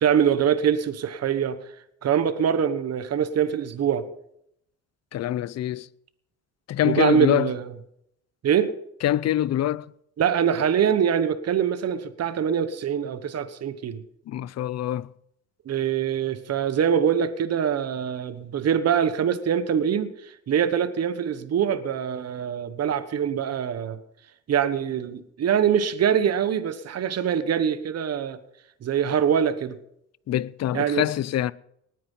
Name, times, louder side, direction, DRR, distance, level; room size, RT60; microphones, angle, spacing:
voice 1, 0.0-1.6 2.0-4.1 6.8-7.7 8.4-8.8 10.2-14.0 15.7-24.0 24.5-28.4 28.8-29.8 30.7-31.1, right 8 dB, 55° right, 1.2 m, -24 dB
voice 2, 5.1-5.9 6.7-7.5 9.0-9.9 14.3-15.1 30.3-31.5, left 12 dB, 60° left, 0.6 m, -24 dB
19.0 x 9.3 x 5.6 m
cardioid pair, 90°, 30 cm